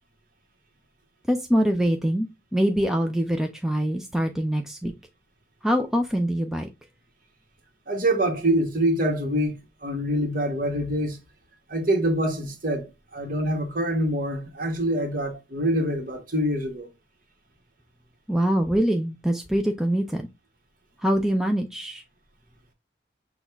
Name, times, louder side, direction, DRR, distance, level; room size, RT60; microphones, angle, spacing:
voice 1, 1.3-4.9 5.6-6.7 18.3-20.3 21.0-22.0, equal, ahead, 0.4 m, -24 dB
voice 2, 7.9-9.6 9.8-11.2 11.7-16.9, right 1 dB, 50° right, 1.3 m, -25 dB
6.2 x 2.3 x 3.4 m
head